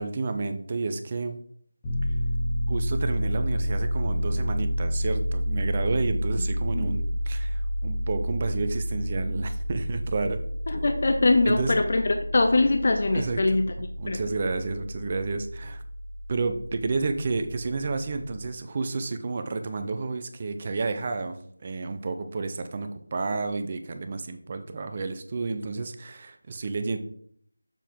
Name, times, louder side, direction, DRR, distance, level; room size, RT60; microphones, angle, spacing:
voice 1, 0.0-1.4 2.7-10.4 11.4-11.7 13.1-13.6 14.0-15.8 16.3-27.0, right 3 dB, 25° right, 8 dB, 0.6 m, -31 dB
Piano, 1.8-18.5, equal, 15° left, 1.5 m, -30 dB
voice 2, 6.7-7.1 10.7-13.7 14.1-14.2, left 2 dB, 40° left, 5 dB, 0.6 m, -23 dB
7.1 x 4.6 x 3.6 m, 0.62 s
figure-of-eight pair, 170°, 0 cm